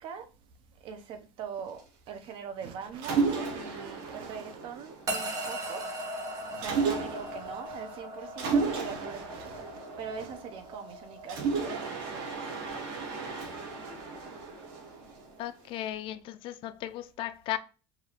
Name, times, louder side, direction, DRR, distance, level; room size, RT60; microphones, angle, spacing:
voice 1, 0.8-3.2 3.5-5.8 6.5-9.7 10.0-12.3, right 6 dB, 55° right, 0.7 m, -41 dB
Mechanisms, 3.0-5.4 6.6-7.5 8.4-10.7 11.3-15.4, right 5 dB, 85° right, 1.2 m, -33 dB
sound 1, 5.1-15.4, right 1 dB, 35° right, 1.1 m, -40 dB
voice 2, 15.4-17.6, left 13 dB, 55° left, 0.4 m, -36 dB
4.8 x 2.7 x 2.9 m
cardioid pair, 135°, 11 cm